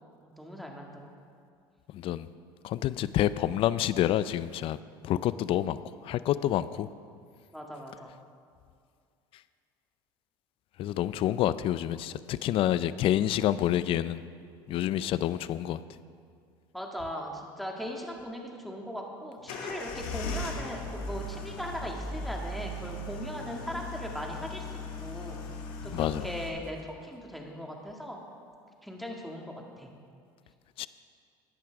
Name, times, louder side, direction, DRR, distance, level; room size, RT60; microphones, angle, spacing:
voice 1, 0.2-1.2 7.5-8.1 16.7-25.4 25.8-28.2 28.8-29.9, equal, ahead, 0 dB, 2.0 m, -39 dB
voice 2, 1.9-2.3 2.6-4.8 5.0-5.8 6.0-6.9 10.8-14.2 14.7-15.8 25.9-26.2 30.8-30.9, left 12 dB, 55° left, 16 dB, 0.4 m, -28 dB
sound 1, 19.5-26.5, left 2 dB, 75° left, 1.5 m, -38 dB
15.0 x 10.5 x 3.5 m, 2.3 s
hypercardioid pair, 80°, 11 cm